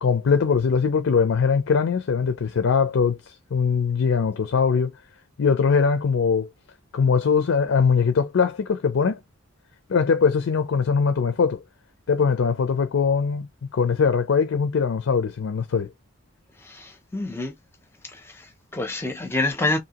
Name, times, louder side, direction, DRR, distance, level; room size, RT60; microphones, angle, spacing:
voice 1, 0.0-3.2 3.5-4.9 5.4-6.5 6.9-9.2 9.9-11.6 12.1-13.5 13.7-15.9, left 5 dB, 65° left, 0.4 m, -21 dB
voice 2, 16.6-17.6 18.0-19.8, left 2 dB, 10° left, 0.5 m, -28 dB
2.7 x 2.6 x 2.8 m
head